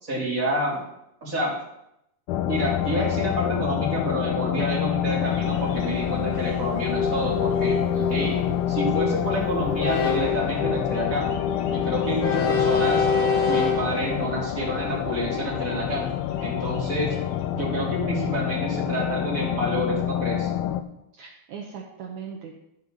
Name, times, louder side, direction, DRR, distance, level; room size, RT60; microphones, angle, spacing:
voice 1, 0.0-0.8 1.2-1.5 2.4-7.8 8.1-8.4 8.7-11.3 11.7-13.1 13.5-16.1 16.4-17.2 17.5-20.5, equal, 20° right, -5 dB, 3.2 m, -28 dB
sound 1, 2.3-20.8, left 10 dB, 80° left, 2.4 m, -27 dB
Train, 5.2-18.2, left 5 dB, 55° left, 2.1 m, -30 dB
voice 2, 7.9-8.6 21.1-22.5, right 6 dB, 70° right, -1 dB, 2.0 m, -39 dB
13.0 x 5.4 x 6.6 m, 0.80 s
omnidirectional pair, 4.4 m